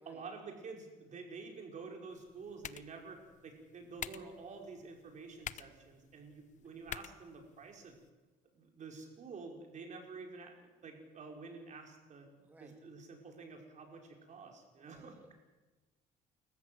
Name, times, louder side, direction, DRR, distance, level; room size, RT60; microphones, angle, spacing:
voice 1, 0.1-8.0 8.5-12.3 12.6-15.3, right 4 dB, 45° right, 2 dB, 5.2 m, -49 dB
sound 1, 2.1-8.1, left 9 dB, 45° left, 0.8 m, -50 dB
voice 2, 12.4-12.8 14.8-15.3, right 2 dB, 10° right, 4 dB, 1.8 m, -61 dB
29.0 x 14.5 x 7.8 m, 1.2 s
cardioid pair, 110°, 17 cm